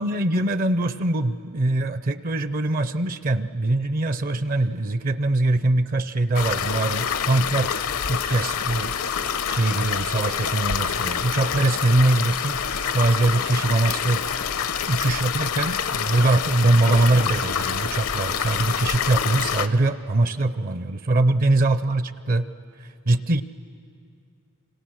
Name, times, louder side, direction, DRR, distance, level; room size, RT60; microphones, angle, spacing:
voice 1, 0.0-7.8 8.1-8.9 9.5-12.6 12.9-14.2 14.9-22.5 22.8-23.4, right 2 dB, 40° right, 13 dB, 0.5 m, -22 dB
sound 1, 6.3-19.7, left 7 dB, 75° left, 0.8 m, -26 dB
27.0 x 26.0 x 6.3 m, 2.5 s
head